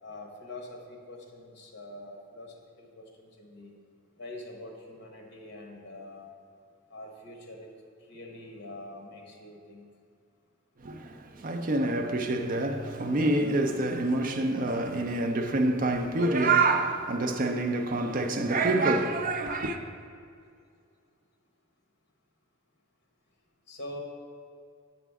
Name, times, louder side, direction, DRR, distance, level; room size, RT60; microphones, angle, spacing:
voice 1, 0.0-3.7 4.2-6.3 6.9-7.7 8.1-9.9 23.7-24.0, left 1 dB, 55° left, 1.1 m, -44 dB
voice 2, 10.8-19.8, right 2 dB, 40° right, 0.5 m, -27 dB
7.0 x 6.0 x 3.5 m
head